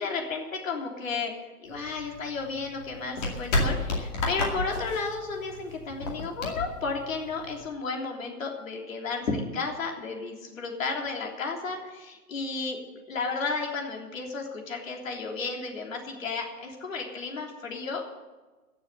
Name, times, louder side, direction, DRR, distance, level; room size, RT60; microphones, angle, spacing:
voice 1, 0.0-18.0, left 4 dB, 55° left, 1 dB, 3.5 m, -33 dB
sound 1, 1.7-7.7, left 2 dB, 25° left, 2.3 m, -32 dB
16.0 x 7.4 x 8.1 m, 1.2 s
hypercardioid pair, 165°, 47 cm